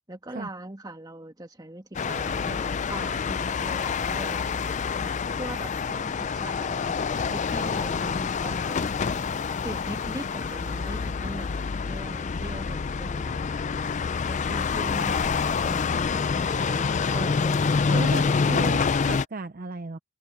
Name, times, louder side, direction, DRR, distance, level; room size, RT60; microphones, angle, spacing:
voice 1, 0.1-4.7 5.4-8.8 9.6-11.5 11.8-13.4 14.3-18.8, right 1 dB, 20° right, 1.8 m, -41 dB
sound 1, 1.9-19.2, left 5 dB, 35° left, 0.4 m, -27 dB
voice 2, 17.9-20.0, right 3 dB, 40° right, 0.6 m, -35 dB
open air
head